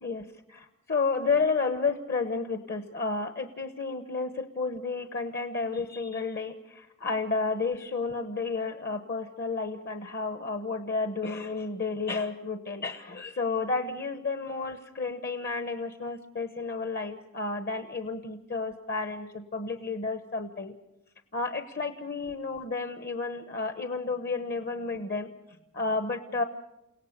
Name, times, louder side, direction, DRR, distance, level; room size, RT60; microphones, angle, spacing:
voice 1, 0.0-20.7 21.3-25.3 25.7-26.4, left 4 dB, 45° left, 7 dB, 1.1 m, -31 dB
29.5 x 17.5 x 6.7 m, 0.94 s
head